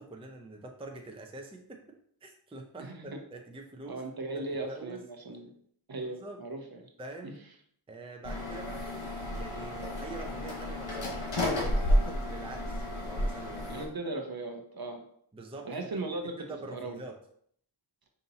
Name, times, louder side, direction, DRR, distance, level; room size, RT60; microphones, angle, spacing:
voice 1, 0.0-4.0 4.3-5.0 6.0-6.4 7.0-7.4 7.9-13.8 15.3-17.2, right 3 dB, 10° right, 2 dB, 0.5 m, -45 dB
voice 2, 2.8-3.2 3.9-5.5 5.9-6.8 7.2-7.3 13.7-15.0 15.6-17.0, right 2 dB, 50° right, 4 dB, 0.8 m, -38 dB
sound 1, 8.2-13.9, left 1 dB, 70° left, 1.3 m, -31 dB
5.3 x 2.7 x 2.8 m, 0.65 s
wide cardioid pair, 40°, 49 cm